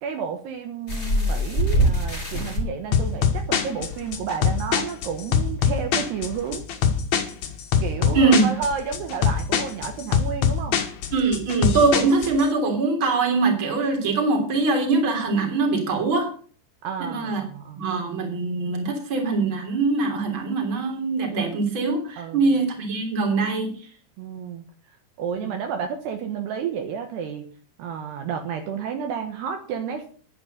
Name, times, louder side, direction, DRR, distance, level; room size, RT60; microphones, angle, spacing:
voice 1, 0.0-6.7 7.8-10.8 16.8-17.8 22.2-22.5 24.2-24.6 25.2-27.5 27.8-30.1, right 6 dB, 70° right, 5 dB, 3.3 m, -31 dB
sound 1, 0.9-2.6 3.6-3.7 4.1-4.2, equal, 15° left, 3.9 m, -22 dB
sound 2, 2.9-12.4, left 7 dB, 60° left, 2.0 m, -23 dB
voice 2, 8.1-8.5 11.1-16.3 17.0-17.4 17.8-23.8 25.3-25.5, right 3 dB, 30° right, 3 dB, 3.4 m, -22 dB
11.0 x 10.0 x 6.6 m, 0.43 s
omnidirectional pair, 5.2 m